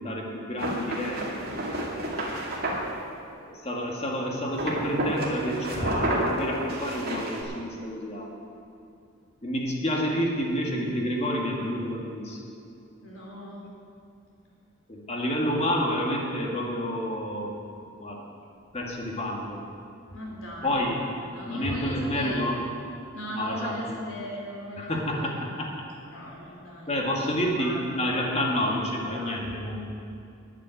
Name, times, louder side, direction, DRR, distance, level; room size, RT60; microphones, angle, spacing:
voice 1, 0.0-2.2 3.3-8.3 9.4-12.4 14.9-17.6 18.0-18.2 18.7-19.6 20.6-21.0 21.5-22.6 23.3-24.0 24.8-25.9 26.9-29.8, equal, 30° left, -1 dB, 1.9 m, -29 dB
sound 1, 0.6-2.9 4.5-7.4, right 1 dB, 50° right, 2.2 m, -30 dB
voice 2, 13.0-13.7 20.1-20.9 21.2-22.5 23.1-25.4 26.1-27.0 27.6-29.4, left 1 dB, 80° left, -2 dB, 3.5 m, -39 dB
11.0 x 7.5 x 9.4 m, 2.5 s
head